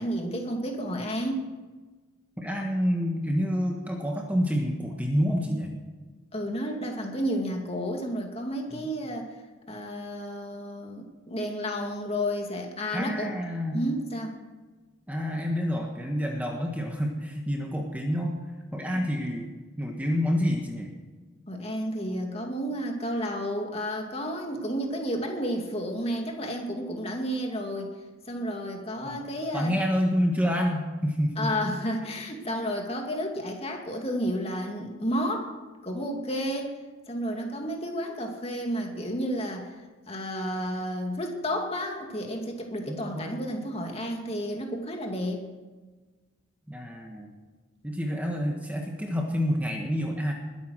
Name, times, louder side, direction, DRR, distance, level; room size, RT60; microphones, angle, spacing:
voice 1, 0.0-1.5 6.3-9.3 9.7-13.3 13.7-14.3 18.9-19.0 21.5-27.9 28.3-29.7 31.4-35.5 35.8-36.7 37.1-39.7 40.1-45.4, equal, 30° left, 2 dB, 2.2 m, -31 dB
voice 2, 2.4-5.7 8.7-8.8 12.9-13.9 15.1-18.3 18.7-19.5 19.8-20.9 29.0-29.3 29.5-31.5 42.9-43.3 46.7-47.3 47.8-50.3, equal, 5° right, 1 dB, 1.5 m, -28 dB
21.0 x 9.5 x 6.3 m, 1.3 s
head